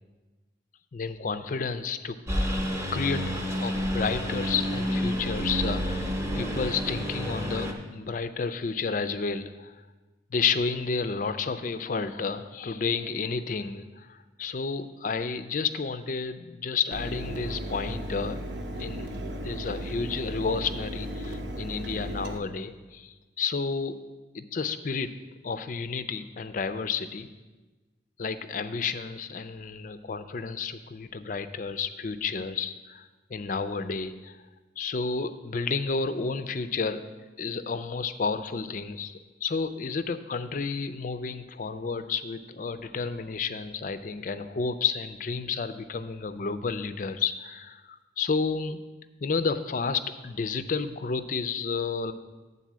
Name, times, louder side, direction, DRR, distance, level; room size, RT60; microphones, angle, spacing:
voice 1, 0.9-2.2 2.9-3.3 3.6-9.7 10.3-18.4 18.8-19.1 19.4-24.0 24.3-25.1 25.4-27.3 28.2-34.4 34.8-37.0 37.4-48.8 49.2-52.1, left 5 dB, 45° left, 11 dB, 0.4 m, -31 dB
Engine, 2.3-7.7, equal, 15° right, 0.9 m, -29 dB
Mechanisms, 16.9-22.4, equal, 70° right, 0.9 m, -35 dB
9.2 x 4.1 x 7.4 m, 1.2 s
head